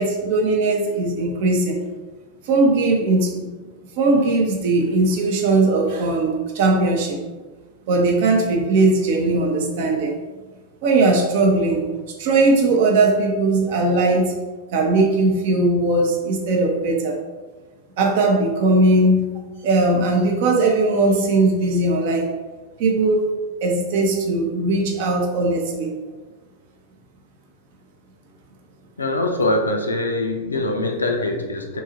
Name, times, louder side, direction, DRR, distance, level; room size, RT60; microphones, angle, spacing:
voice 1, 0.0-1.8 2.5-3.5 4.0-7.2 7.9-10.1 10.8-11.9 12.2-14.4 14.7-17.1 18.0-19.3 19.6-22.3 22.8-23.3 23.6-25.9, right 2 dB, 50° right, 1 dB, 0.5 m, -19 dB
voice 2, 29.0-31.8, left 2 dB, 75° left, 3 dB, 0.4 m, -23 dB
2.8 x 2.3 x 2.7 m, 1.3 s
figure-of-eight pair, 90°, 0 cm